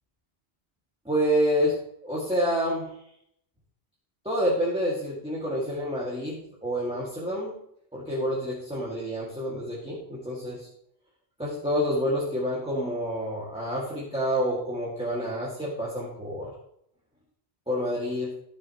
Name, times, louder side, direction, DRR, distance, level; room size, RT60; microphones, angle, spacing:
voice 1, 1.1-2.9 4.2-7.5 7.9-10.7 11.4-16.5 17.7-18.3, equal, 5° right, -6 dB, 2.0 m, -28 dB
14.5 x 6.7 x 3.0 m, 0.72 s
omnidirectional pair, 1.0 m